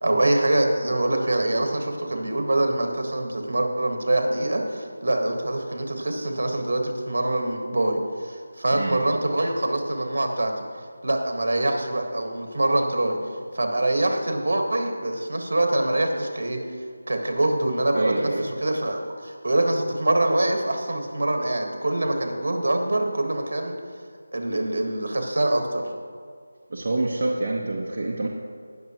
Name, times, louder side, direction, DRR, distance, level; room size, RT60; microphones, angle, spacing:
voice 1, 0.0-10.5 11.0-13.2 13.5-16.6 17.1-23.7 24.3-25.8, right 1 dB, 65° right, 3 dB, 1.6 m, -24 dB
voice 2, 8.7-9.0 17.9-18.5 26.7-28.3, right 2 dB, 45° right, -3 dB, 0.9 m, -26 dB
19.5 x 6.6 x 3.0 m, 2.1 s
figure-of-eight pair, 170°, 0 cm